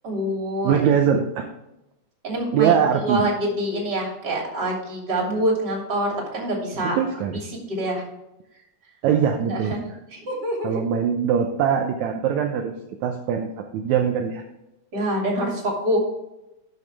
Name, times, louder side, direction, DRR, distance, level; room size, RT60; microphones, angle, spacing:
voice 1, 0.0-0.8 2.2-7.0 7.5-8.0 9.5-9.8 10.1-10.8 14.9-16.0, right 1 dB, 35° right, -1 dB, 3.2 m, -26 dB
voice 2, 0.6-1.5 2.5-3.3 6.8-7.4 9.0-9.7 10.6-12.7 13.0-13.5 13.7-14.4, right 8 dB, 75° right, 3 dB, 2.0 m, -22 dB
12.0 x 7.0 x 3.3 m, 0.91 s
omnidirectional pair, 3.6 m